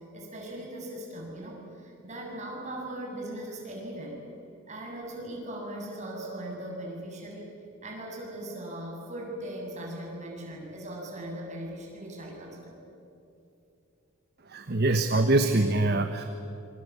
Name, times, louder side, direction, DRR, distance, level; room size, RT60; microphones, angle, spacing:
voice 1, 0.1-4.2 4.7-7.5 7.8-12.8, right 1 dB, 35° right, -1 dB, 7.0 m, -39 dB
voice 2, 14.5-16.2, right 2 dB, 50° right, 7 dB, 1.2 m, -24 dB
26.5 x 24.5 x 8.4 m, 2.7 s
head